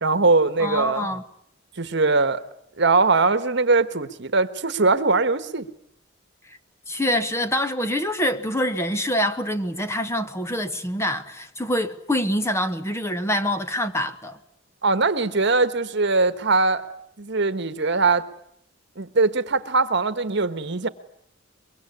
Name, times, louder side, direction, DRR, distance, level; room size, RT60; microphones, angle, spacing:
voice 1, 0.0-1.1 1.8-2.4 2.8-5.7 14.8-16.8 17.2-18.2 19.0-20.9, right 3 dB, 65° right, 1.4 m, -21 dB
voice 2, 0.6-1.2 6.5-6.6 6.9-14.4, left 1 dB, 15° left, 1.2 m, -25 dB
24.5 x 22.5 x 9.7 m
head